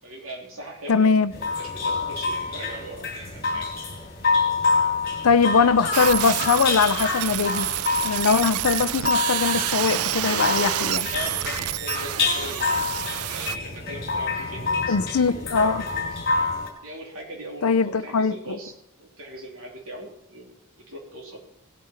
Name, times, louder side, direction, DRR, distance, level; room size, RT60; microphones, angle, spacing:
voice 1, 0.0-3.8 10.0-12.8 13.3-16.1 16.8-18.7 19.0-21.4, right 1 dB, 70° right, 0 dB, 3.2 m, -40 dB
voice 2, 0.9-1.3 5.2-7.7 8.0-11.1 14.9-15.8 17.6-18.3, left 5 dB, 70° left, 13 dB, 0.5 m, -21 dB
sound 1, 1.3-16.7, left 4 dB, 45° left, 3.1 m, -27 dB
sound 2, 5.9-13.6, right 13 dB, 85° right, 0.4 m, -28 dB
17.5 x 8.5 x 4.4 m, 0.77 s
head